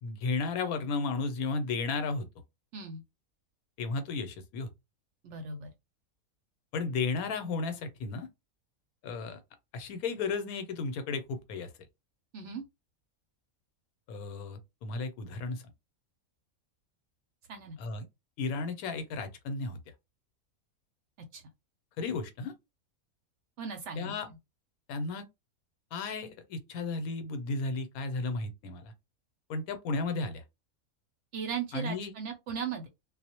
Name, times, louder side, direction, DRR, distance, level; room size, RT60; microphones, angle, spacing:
voice 1, 0.0-2.3 3.8-4.7 6.7-8.3 9.0-9.4 9.7-11.7 14.1-15.6 17.8-18.1 18.4-19.8 22.0-22.5 24.0-24.3 24.9-25.3 25.9-28.9 29.5-30.4 31.7-32.1, left 4 dB, 80° left, 1.1 m, -34 dB
voice 2, 5.2-5.7 12.3-12.6 17.5-17.8 21.3-21.4 23.6-24.2 31.3-32.9, right 6 dB, 65° right, 0.7 m, -37 dB
2.3 x 2.0 x 2.7 m
omnidirectional pair, 1.5 m